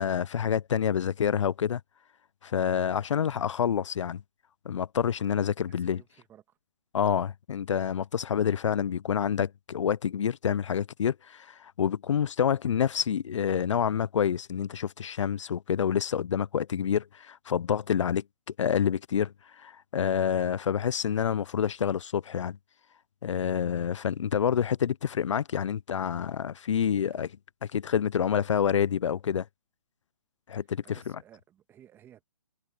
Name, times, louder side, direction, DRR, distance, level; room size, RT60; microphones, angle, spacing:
voice 1, 0.0-1.8 2.4-4.2 4.7-6.0 6.9-18.2 18.6-22.6 23.2-27.3 27.7-29.5 30.5-31.0, left 8 dB, 70° left, 0.5 m, -28 dB
voice 2, 5.7-6.6 26.9-27.3 30.8-32.3, right 10 dB, 15° right, 1.6 m, -56 dB
hypercardioid pair, 150°, 16 cm